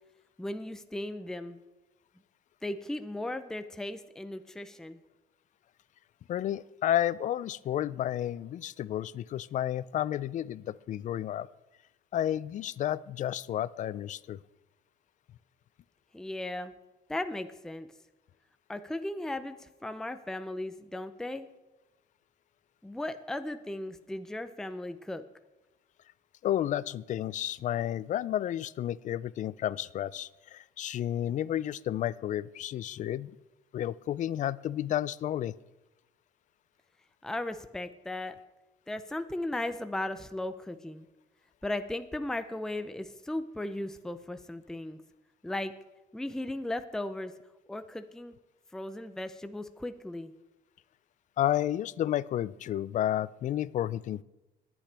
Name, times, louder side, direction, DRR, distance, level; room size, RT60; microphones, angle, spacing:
voice 1, 0.4-1.6 2.6-5.0 16.1-16.7 17.1-17.9 18.7-21.5 22.8-25.2 37.2-38.4 38.9-41.1 41.6-45.0 45.4-45.7 46.1-47.3 47.7-48.3 48.7-50.3, left 1 dB, 5° left, 9 dB, 0.6 m, -36 dB
voice 2, 6.3-11.5 12.1-14.4 26.4-33.3 33.7-35.5 51.4-54.2, left 11 dB, 50° left, 20 dB, 0.4 m, -31 dB
21.5 x 8.7 x 3.4 m, 1.0 s
cardioid pair, 110°, 17 cm